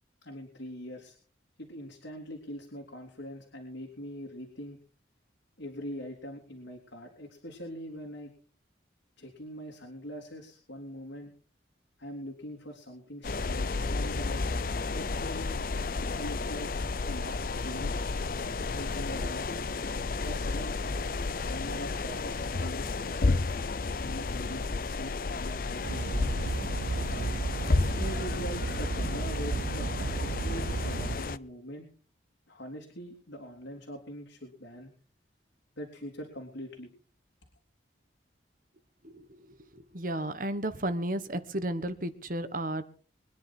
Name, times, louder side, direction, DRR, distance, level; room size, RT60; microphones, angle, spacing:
voice 1, 0.2-1.2 1.6-4.8 5.6-8.3 9.2-11.3 12.0-14.5 14.9-15.6 16.1-16.7 17.1-18.0 18.7-19.9 20.2-20.8 21.4-23.5 24.0-26.3 27.1-27.4 27.9-31.9 32.5-34.9 35.8-36.9, equal, 85° left, 1 dB, 3.4 m, -42 dB
sound 1, 13.2-31.4, left 3 dB, 50° left, 0.6 m, -32 dB
sound 2, 25.8-31.2, right 3 dB, 90° right, 0.7 m, -33 dB
voice 2, 39.0-42.8, right 1 dB, 45° right, 11 dB, 1.5 m, -33 dB
23.5 x 10.5 x 4.5 m, 0.42 s
head